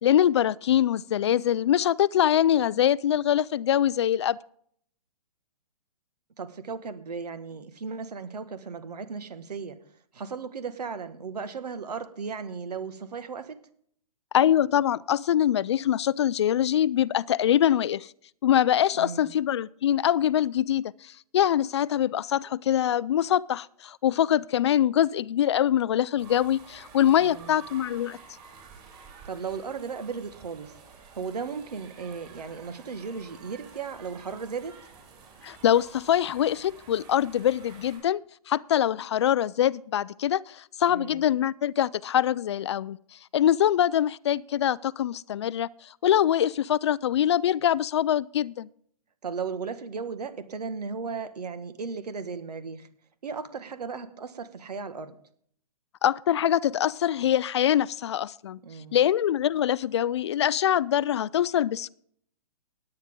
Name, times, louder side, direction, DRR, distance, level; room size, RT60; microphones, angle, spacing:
voice 1, 0.0-4.4 14.3-18.1 18.4-28.2 35.4-38.2 38.5-43.0 43.3-45.7 46.0-48.7 56.0-58.6 58.9-61.9, left 10 dB, 45° left, 0.4 m, -24 dB
voice 2, 6.4-9.8 10.1-13.6 19.0-19.3 27.2-27.6 29.2-30.7 31.1-34.8 40.9-41.2 49.2-52.9 53.2-55.2 58.6-59.0, right 5 dB, 80° right, 1.8 m, -36 dB
sound 1, 26.2-38.0, right 5 dB, 25° right, 4.7 m, -50 dB
17.5 x 9.6 x 3.7 m
hypercardioid pair, 155°, 20 cm